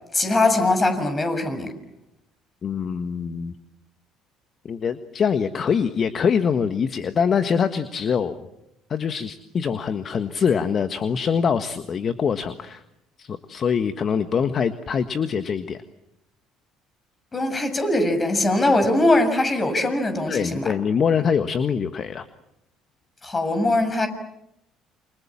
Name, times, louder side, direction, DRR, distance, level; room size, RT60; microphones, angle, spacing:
voice 1, 0.1-1.7 17.3-20.7 23.2-24.1, left 2 dB, 25° left, 8 dB, 6.7 m, -21 dB
voice 2, 2.6-3.6 4.6-8.4 8.9-12.8 13.2-15.8 20.3-22.2, left 6 dB, 45° left, 10 dB, 1.5 m, -24 dB
28.5 x 27.0 x 7.4 m, 0.83 s
hypercardioid pair, 60°, 0 cm